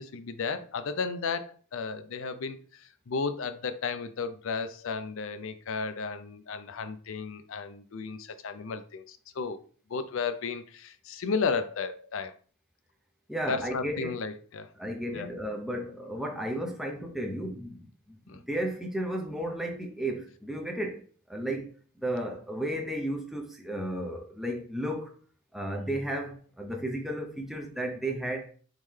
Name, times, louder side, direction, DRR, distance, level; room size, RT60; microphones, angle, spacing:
voice 1, 0.0-9.6 9.9-12.3 13.4-14.7 15.1-15.3 18.3-18.4, left 5 dB, 65° left, 0.5 m, -34 dB
voice 2, 13.3-14.1 14.8-25.2 25.5-28.5, right 1 dB, ahead, 0.5 m, -34 dB
4.0 x 3.7 x 3.2 m
head